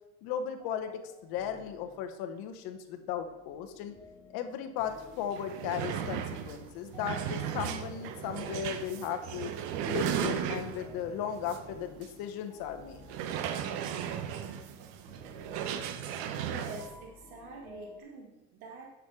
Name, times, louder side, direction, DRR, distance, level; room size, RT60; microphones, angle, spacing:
voice 1, 0.2-3.9 4.3-9.5 9.9-13.1, left 8 dB, 55° left, 6 dB, 1.1 m, -36 dB
sound 1, 0.6-18.0, left 3 dB, 10° left, 0.7 m, -55 dB
sound 2, 4.9-5.0 5.3-11.0 11.5-11.6 12.0-12.1 13.0-16.9, right 9 dB, 60° right, 1.0 m, -35 dB
sound 3, 5.5-11.8, right 7 dB, 25° right, 0.6 m, -52 dB
voice 2, 16.2-18.9, right 3 dB, 85° right, 1 dB, 1.6 m, -46 dB
8.1 x 6.2 x 4.7 m, 1.0 s
supercardioid pair, 130°, 42 cm